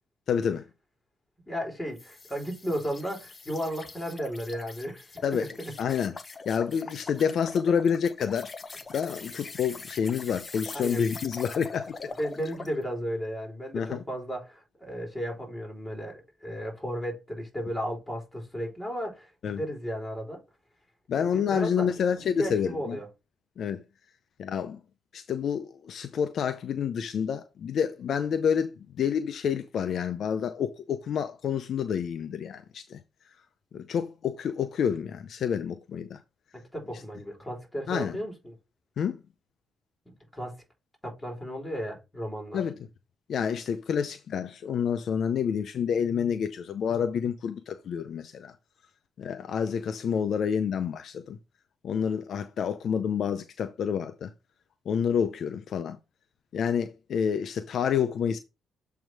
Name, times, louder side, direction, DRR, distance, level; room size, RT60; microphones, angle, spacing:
voice 1, 0.3-0.6 5.2-5.5 5.8-6.1 6.5-8.5 8.9-11.9 13.7-14.0 19.4-19.6 21.1-23.0 23.6-23.8 24.4-24.8 25.1-33.0 33.7-36.2 37.9-38.2 39.0-39.2 42.5-42.8 43.3-48.5 49.2-51.4 51.8-54.3 54.9-56.0 56.5-58.4, left 7 dB, 60° left, 0.6 m, -28 dB
voice 2, 1.5-5.7 10.7-11.1 12.2-20.4 21.1-21.9 22.4-23.1 36.5-38.6 40.1-40.6 41.0-42.6, equal, 10° left, 3.8 m, -34 dB
sound 1, 2.0-12.8, left 4 dB, 30° left, 0.9 m, -43 dB
7.5 x 3.5 x 4.7 m
cardioid pair, 90°, 0 cm